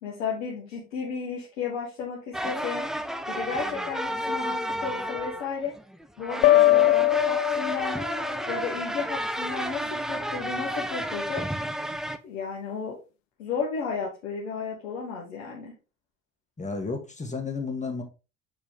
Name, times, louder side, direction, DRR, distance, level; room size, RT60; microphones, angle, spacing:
voice 1, 0.0-2.8 3.3-5.7 6.2-8.0 8.5-11.4 12.2-13.0 13.4-15.7, left 5 dB, 70° left, -4 dB, 1.6 m, -33 dB
sound 1, 2.3-12.2, equal, ahead, 0.6 m, -31 dB
sound 2, 6.4-8.3, left 16 dB, 45° left, 0.4 m, -21 dB
voice 2, 16.6-18.0, left 4 dB, 20° left, 3 dB, 2.1 m, -32 dB
7.4 x 4.7 x 3.5 m, 0.30 s
figure-of-eight pair, 50°, 39 cm